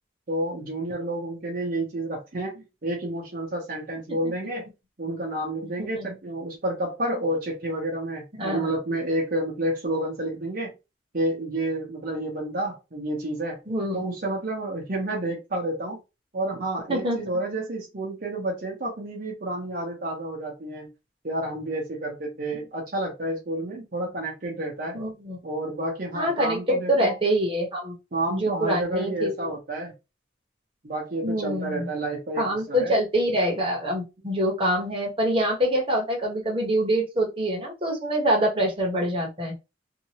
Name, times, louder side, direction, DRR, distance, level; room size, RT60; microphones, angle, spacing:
voice 1, 0.3-4.7 5.0-10.7 11.1-13.6 13.9-16.0 16.3-20.9 21.2-25.0 25.4-27.1 28.1-29.9 30.8-32.9, right 1 dB, 55° right, 0.9 m, -30 dB
voice 2, 8.3-8.6 13.7-14.0 16.9-17.2 24.9-25.4 26.1-27.9 28.3-29.3 31.2-31.9 32.4-39.5, equal, 30° right, 1.1 m, -25 dB
2.8 x 2.5 x 2.9 m
head